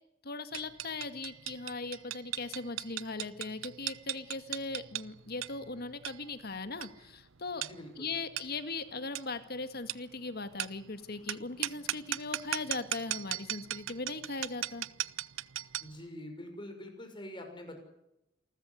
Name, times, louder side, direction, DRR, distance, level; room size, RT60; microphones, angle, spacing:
voice 1, 0.2-7.6 8.0-14.9, left 3 dB, 50° left, 10 dB, 2.1 m, -39 dB
sound 1, 0.5-16.0, right 13 dB, 90° right, 0.8 m, -39 dB
voice 2, 7.5-8.1 15.8-17.8, left 1 dB, 25° left, 4 dB, 6.0 m, -45 dB
28.0 x 14.0 x 9.9 m, 0.88 s
head